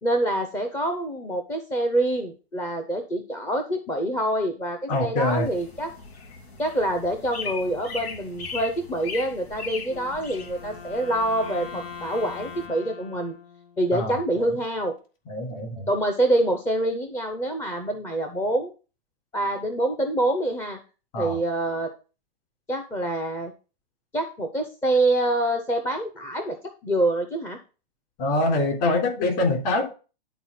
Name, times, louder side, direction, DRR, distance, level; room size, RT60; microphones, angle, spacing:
voice 1, 0.0-5.9 6.6-13.3 13.8-15.0 15.9-18.7 19.3-20.8 21.2-21.9 22.7-23.5 24.1-26.6 26.8-27.6, right 1 dB, 10° left, 5 dB, 0.5 m, -26 dB
voice 2, 4.9-5.5 13.9-14.5 15.3-15.9 21.1-21.4 28.2-29.9, left 2 dB, 40° left, 2 dB, 3.6 m, -25 dB
sound 1, 5.2-12.7, left 5 dB, 90° left, 3.4 m, -39 dB
Wind instrument woodwind instrument, 9.9-14.1, left 6 dB, 65° left, 2.2 m, -41 dB
11.0 x 4.1 x 5.7 m, 0.34 s
hypercardioid pair, 155°, 31 cm